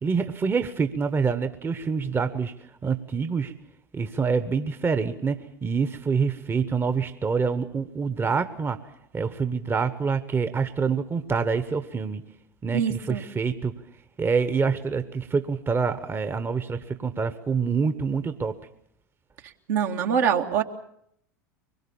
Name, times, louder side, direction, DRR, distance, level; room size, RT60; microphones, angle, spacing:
voice 1, 0.0-2.5 2.8-3.5 3.9-8.8 9.1-12.2 12.6-13.7 14.2-18.6, right 5 dB, 20° right, 10 dB, 1.2 m, -26 dB
voice 2, 12.7-13.2 19.7-20.6, right 7 dB, 65° right, 3 dB, 2.0 m, -24 dB
24.0 x 22.0 x 7.2 m, 0.73 s
hypercardioid pair, 80°, 10 cm